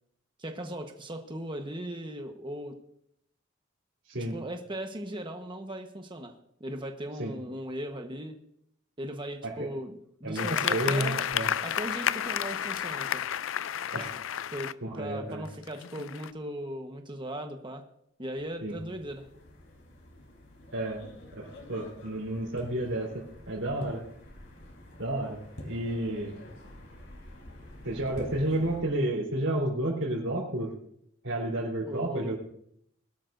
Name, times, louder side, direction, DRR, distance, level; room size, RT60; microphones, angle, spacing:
voice 1, 0.4-2.7 4.1-8.4 9.0-11.2 11.6-13.2 14.5-17.8 18.2-19.3 31.9-32.3, right 1 dB, 25° right, 4 dB, 1.2 m, -38 dB
voice 2, 10.2-11.5 13.9-14.2 14.8-15.4 18.6-18.7 20.7-21.0 21.3-24.0 25.0-26.4 27.8-30.7 31.2-32.4, right 1 dB, 85° right, -6 dB, 3.7 m, -31 dB
sound 1, 10.4-14.7 15.5-16.3, left 10 dB, 80° left, 0.4 m, -31 dB
sound 2, 18.4-28.8, left 1 dB, 65° left, 4.0 m, -47 dB
21.0 x 12.5 x 2.6 m, 0.70 s
head